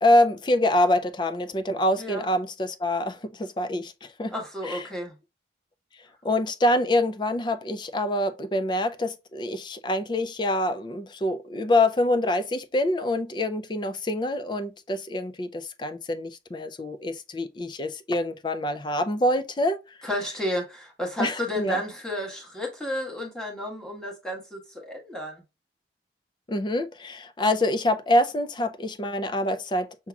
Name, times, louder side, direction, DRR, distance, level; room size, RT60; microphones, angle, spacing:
voice 1, 0.0-4.3 4.6-4.9 6.2-20.0 21.2-21.8 26.5-30.1, left 1 dB, 25° left, 0.4 m, -25 dB
voice 2, 4.3-5.1 20.0-25.4, equal, 5° left, 1.2 m, -32 dB
5.8 x 2.8 x 2.3 m
head